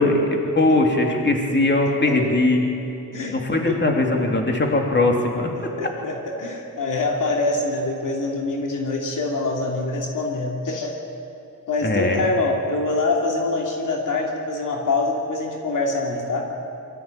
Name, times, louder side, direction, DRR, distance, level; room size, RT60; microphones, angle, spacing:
voice 1, 0.0-2.7 3.3-5.5 11.8-12.3, left 2 dB, 35° left, 1 dB, 3.2 m, -20 dB
voice 2, 5.8-10.9 11.7-16.5, left 3 dB, 70° left, 0 dB, 2.8 m, -25 dB
23.0 x 14.0 x 9.0 m, 2.7 s
cardioid pair, 75°, 33 cm